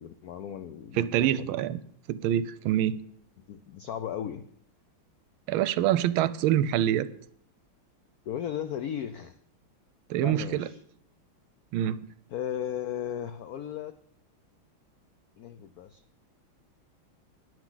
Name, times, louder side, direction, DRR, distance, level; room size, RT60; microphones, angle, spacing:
voice 1, 0.0-1.3 3.5-4.4 8.3-9.3 10.2-10.8 12.3-13.9 15.4-16.0, left 9 dB, 75° left, 0.8 m, -35 dB
voice 2, 0.9-1.8 2.1-3.0 5.5-7.1 10.1-10.7 11.7-12.1, right 11 dB, 80° right, 1.4 m, -26 dB
20.0 x 7.3 x 3.9 m
omnidirectional pair, 2.3 m